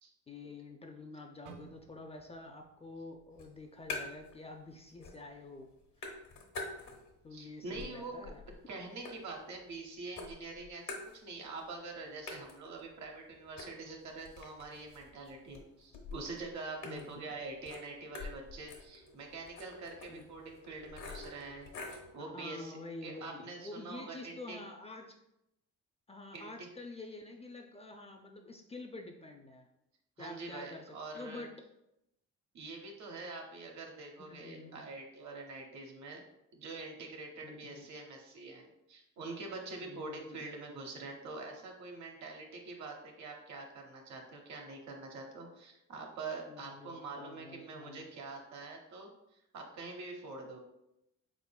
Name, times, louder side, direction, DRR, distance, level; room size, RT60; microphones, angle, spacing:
voice 1, 0.3-5.7 7.2-8.4 16.8-17.3 20.1-20.3 22.2-25.2 26.1-29.7 30.2-31.5 34.2-34.8 37.4-37.9 39.8-40.5 46.5-48.1, left 3 dB, 20° left, 3 dB, 0.3 m, -48 dB
sound 1, 1.5-5.5 5.8-6.1 6.8-7.1, right 7 dB, 85° right, 0.5 m, -60 dB
sound 2, 3.3-4.4 4.7-5.4 5.6-7.2 7.6-9.8 10.2-11.6 11.9-12.0 12.3-22.1, left 3 dB, 70° left, 1.0 m, -47 dB
voice 2, 7.3-8.3 8.7-24.6 26.3-26.7 30.2-31.4 32.5-36.2 36.5-49.1 49.5-50.6, right 3 dB, 65° right, 2 dB, 0.8 m, -45 dB
4.0 x 3.6 x 2.2 m, 0.85 s
cardioid pair, 90°, 30 cm